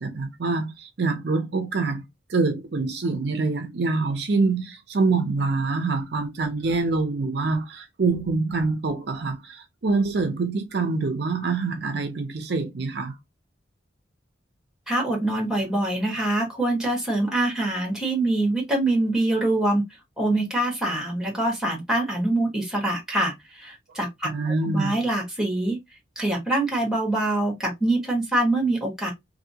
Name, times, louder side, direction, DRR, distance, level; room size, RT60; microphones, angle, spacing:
voice 1, 0.0-2.0 2.3-13.1 24.2-25.0, right 3 dB, 60° right, 0.5 m, -25 dB
voice 2, 14.9-19.8 20.2-25.8 26.1-29.1, right 1 dB, 5° right, 1.2 m, -24 dB
2.7 x 2.6 x 2.7 m
head